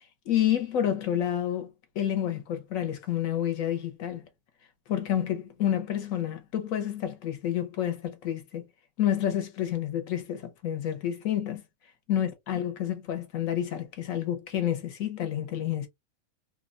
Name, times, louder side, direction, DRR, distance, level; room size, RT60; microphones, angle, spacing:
voice 1, 0.0-4.2 4.9-8.6 9.0-11.6 12.1-15.9, left 10 dB, 70° left, 1.0 m, -29 dB
3.1 x 2.1 x 2.4 m
omnidirectional pair, 1.6 m